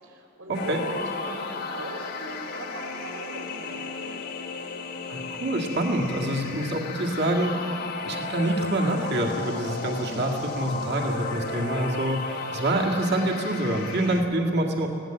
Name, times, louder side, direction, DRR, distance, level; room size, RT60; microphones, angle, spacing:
voice 1, 0.0-4.2, right 2 dB, 70° right, 1 dB, 4.2 m, -39 dB
sound 1, 0.5-14.2, left 4 dB, 50° left, 1.4 m, -34 dB
voice 2, 5.1-7.7 8.0-12.2 12.5-14.9, right 1 dB, 55° right, 0 dB, 2.0 m, -26 dB
20.5 x 16.5 x 7.9 m, 2.7 s
head